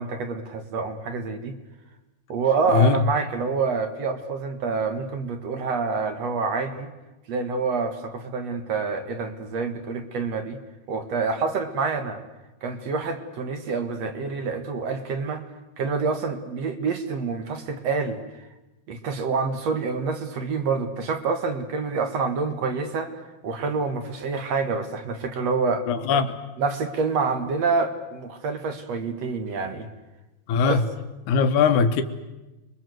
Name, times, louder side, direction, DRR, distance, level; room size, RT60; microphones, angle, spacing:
voice 1, 0.0-1.6 2.3-6.9 7.3-10.6 10.9-12.2 12.6-15.4 15.8-18.5 18.9-23.1 23.4-25.9 26.6-29.9 30.6-30.8, right 4 dB, 50° right, 2.4 m, -27 dB
voice 2, 2.7-3.0 25.9-26.3 30.5-30.9 31.3-32.0, left 5 dB, 65° left, 2.6 m, -20 dB
29.0 x 22.5 x 7.9 m
omnidirectional pair, 4.3 m